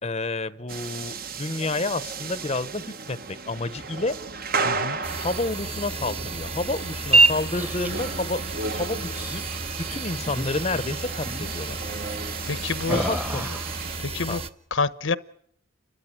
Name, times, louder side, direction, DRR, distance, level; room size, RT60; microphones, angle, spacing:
voice 1, 0.0-4.1 5.2-8.4 8.7-9.4 9.9-11.8 12.9-13.6 14.3-14.4, left 2 dB, 30° left, 0.9 m, -30 dB
sound 1, 0.7-14.0, right 4 dB, 45° right, 1.4 m, -35 dB
voice 2, 4.6-5.0 12.5-13.0 14.0-14.4 14.7-15.2, left 4 dB, 70° left, 1.0 m, -27 dB
sound 2, 5.0-14.5, right 2 dB, 30° right, 1.3 m, -28 dB
sound 3, 7.3-8.1 9.0-9.6 10.2-10.5 10.7-11.0 11.3-11.5 12.8-13.8, equal, 10° right, 1.2 m, -34 dB
30.0 x 13.5 x 9.9 m
head